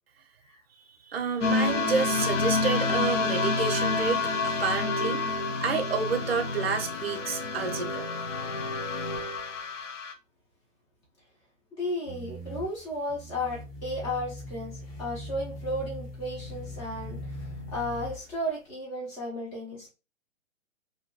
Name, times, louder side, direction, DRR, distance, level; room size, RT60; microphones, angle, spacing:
voice 1, 1.1-8.0, right 5 dB, 50° right, 0.6 m, -30 dB
sound 1, 1.4-10.1, left 3 dB, 70° left, 0.6 m, -28 dB
voice 2, 11.7-19.9, left 1 dB, 10° left, 0.5 m, -34 dB
sound 2, 12.1-18.5, left 1 dB, 50° left, 1.3 m, -40 dB
2.6 x 2.5 x 2.9 m
figure-of-eight pair, 125°, 39 cm